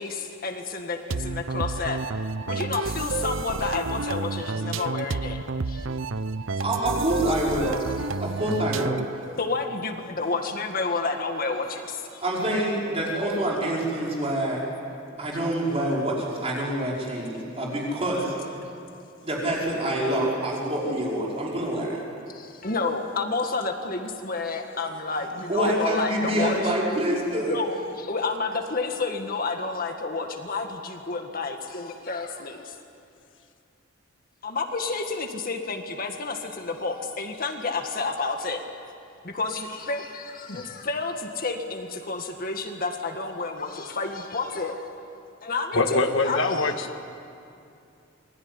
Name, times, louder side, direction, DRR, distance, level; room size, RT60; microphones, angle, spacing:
voice 1, 0.0-2.0 2.5-5.4 5.7-5.9 9.4-12.2 22.3-26.7 27.5-32.8 34.4-38.6 39.2-44.9 45.4-46.7, left 3 dB, 45° left, 4 dB, 1.8 m, -30 dB
sound 1, 1.1-9.2, right 3 dB, 70° right, 0.7 m, -30 dB
voice 2, 6.6-7.8 8.2-9.0 12.2-14.6 15.2-18.3 19.2-22.0 25.2-27.6, right 1 dB, 30° right, -4 dB, 5.4 m, -26 dB
voice 3, 45.7-47.0, left 3 dB, 65° left, 5 dB, 1.7 m, -24 dB
27.5 x 21.5 x 9.8 m, 2.6 s
head